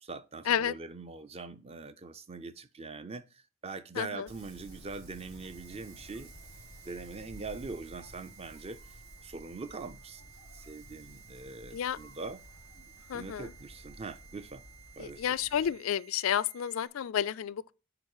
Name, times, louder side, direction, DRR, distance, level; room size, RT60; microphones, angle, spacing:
voice 1, 0.0-6.3 6.8-8.8 9.2-10.2 10.5-12.4 13.1-14.6 15.0-15.4, right 3 dB, 30° right, 0.5 m, -42 dB
voice 2, 4.0-4.3 11.7-12.0 13.1-13.5 15.0-17.7, left 9 dB, 80° left, 0.4 m, -31 dB
Wind, 4.3-15.7, equal, 80° right, 2.9 m, -53 dB
sound 1, 5.4-16.9, right 8 dB, 55° right, 1.2 m, -56 dB
9.7 x 4.0 x 4.7 m
head